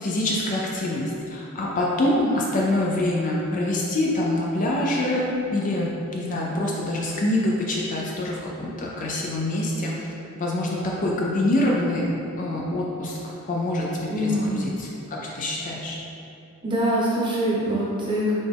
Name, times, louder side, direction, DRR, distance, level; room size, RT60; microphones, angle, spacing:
voice 1, 0.0-10.1 10.4-12.1 12.4-13.2 13.5-16.0, left 1 dB, 35° left, -3 dB, 0.5 m, -25 dB
voice 2, 14.1-14.6 16.6-18.3, equal, 20° right, -7 dB, 0.9 m, -24 dB
4.2 x 3.3 x 3.4 m, 2.7 s
head